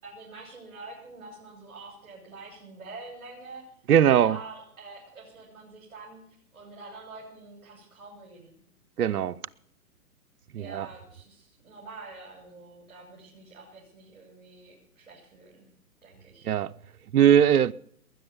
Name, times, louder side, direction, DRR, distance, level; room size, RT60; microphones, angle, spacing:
voice 1, 0.0-3.6 4.1-6.2 6.5-8.6 10.6-15.7 16.0-16.5, right 3 dB, 60° right, 7.0 m, -46 dB
voice 2, 3.9-4.4 9.0-9.4 10.5-10.9 16.4-16.7 17.1-17.7, right 9 dB, 80° right, 0.8 m, -20 dB
20.5 x 10.0 x 7.0 m
hypercardioid pair, 155°, 44 cm